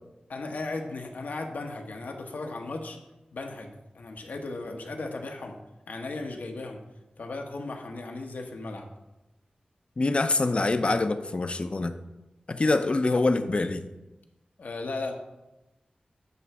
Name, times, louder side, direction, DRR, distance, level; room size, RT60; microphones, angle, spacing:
voice 1, 0.3-3.0 3.3-5.6 5.9-6.8 7.2-8.9 14.6-15.1, left 3 dB, 85° left, 3 dB, 1.1 m, -36 dB
voice 2, 10.0-11.9 12.5-13.9, left 2 dB, 40° left, 9 dB, 0.6 m, -25 dB
9.5 x 3.3 x 6.0 m, 0.99 s
wide cardioid pair, 95°, 3 cm